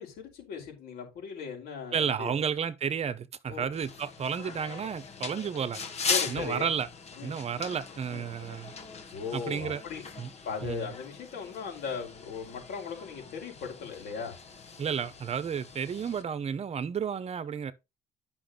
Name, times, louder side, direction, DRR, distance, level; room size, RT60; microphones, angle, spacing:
voice 1, 0.0-2.4 3.5-3.7 6.1-6.7 7.2-7.4 8.1-8.3 9.1-10.0 10.4-14.3, left 6 dB, 70° left, 4.7 m, -38 dB
voice 2, 1.9-5.8 6.3-6.9 7.2-8.7 9.3-9.8 10.2-10.3 10.6-10.9 14.8-17.7, right 7 dB, 40° right, 1.0 m, -32 dB
sound 1, 3.7-16.2, left 5 dB, 40° left, 1.6 m, -39 dB
10.0 x 6.1 x 3.9 m
cardioid pair, 110°, 17 cm